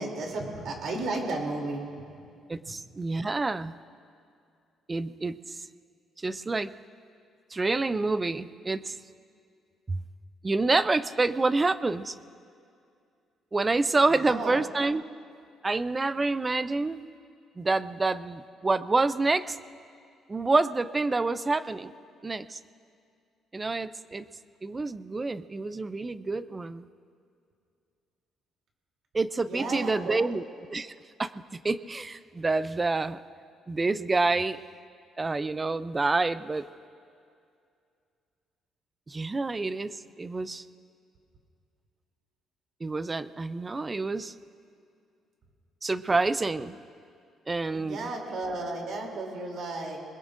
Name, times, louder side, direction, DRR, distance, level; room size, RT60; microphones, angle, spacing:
voice 1, 0.0-1.8 2.6-2.7 14.1-14.6 29.5-30.2 47.7-50.0, right 2 dB, 55° right, 0 dB, 3.0 m, -33 dB
voice 2, 2.5-3.7 4.9-5.6 6.2-6.7 7.5-9.0 9.9-10.0 10.4-12.2 13.5-15.0 15.6-17.0 17.6-19.6 20.3-21.9 22.2-22.6 23.5-24.3 24.6-26.9 29.1-30.4 30.7-30.9 31.2-31.3 31.6-33.2 33.7-34.6 35.2-36.7 39.1-40.6 42.8-44.3 45.8-46.8 47.5-48.1, right 3 dB, 15° right, 14 dB, 0.3 m, -27 dB
27.0 x 21.0 x 2.6 m, 2.3 s
cardioid pair, 180°, 0 cm